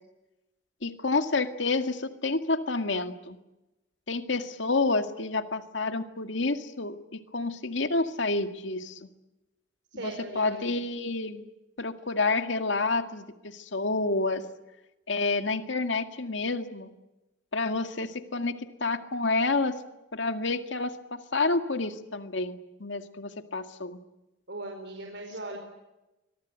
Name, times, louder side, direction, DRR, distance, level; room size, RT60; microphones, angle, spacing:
voice 1, 0.8-3.4 4.1-9.1 10.0-11.4 11.8-14.4 15.1-16.9 17.5-19.8 20.1-24.0, left 3 dB, 75° left, 8 dB, 2.0 m, -29 dB
voice 2, 9.9-10.7 24.5-25.6, right 2 dB, 65° right, 2 dB, 4.9 m, -39 dB
24.5 x 23.0 x 9.1 m, 0.99 s
head